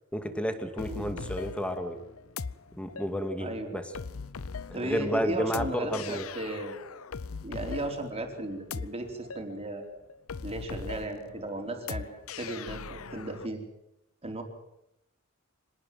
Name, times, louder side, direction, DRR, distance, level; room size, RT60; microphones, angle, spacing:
voice 1, 0.1-2.0 2.7-3.8 4.7-6.3, equal, 5° left, 7 dB, 2.4 m, -31 dB
sound 1, 0.8-13.5, left 5 dB, 80° left, 0.8 m, -40 dB
voice 2, 3.4-3.8 4.7-6.8 7.4-9.9 10.4-12.1 12.4-13.7 14.2-14.4, right 1 dB, 30° right, 3 dB, 4.4 m, -35 dB
25.5 x 18.5 x 7.7 m, 0.84 s
head